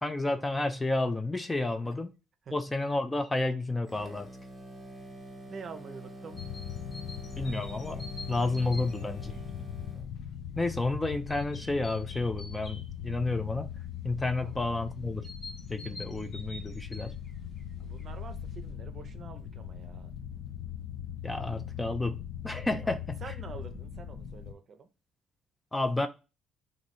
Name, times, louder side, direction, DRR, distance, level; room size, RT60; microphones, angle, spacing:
voice 1, 0.0-2.1 2.5-4.3 7.4-9.3 10.6-13.7 14.0-15.3 15.7-17.1 21.2-23.2 25.7-26.1, left 2 dB, 15° left, 0.4 m, -31 dB
sound 1, 3.9-10.1, right 1 dB, 15° right, 1.0 m, -46 dB
voice 2, 5.5-6.4 14.4-14.7 17.8-20.1 22.8-24.9, right 5 dB, 40° right, 0.6 m, -47 dB
sound 2, 6.3-24.5, left 9 dB, 70° left, 0.5 m, -40 dB
sound 3, 6.4-9.5 11.3-12.9 15.2-17.6 18.0-18.1, left 1 dB, 35° left, 1.0 m, -48 dB
3.0 x 2.6 x 4.1 m
cardioid pair, 115°, 0 cm